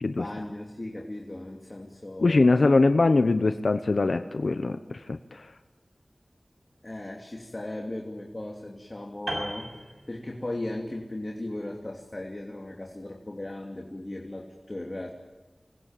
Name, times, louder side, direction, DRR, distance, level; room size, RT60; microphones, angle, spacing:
voice 1, 0.1-2.5 6.8-15.1, left 1 dB, 40° left, 0 dB, 2.9 m, -37 dB
voice 2, 2.2-5.5, left 3 dB, 80° left, 9 dB, 0.9 m, -22 dB
Piano, 9.3-10.7 11.0-11.2, right 1 dB, 75° right, 6.5 m, -36 dB
27.0 x 20.0 x 9.1 m, 1.2 s
wide cardioid pair, 55°, 0 cm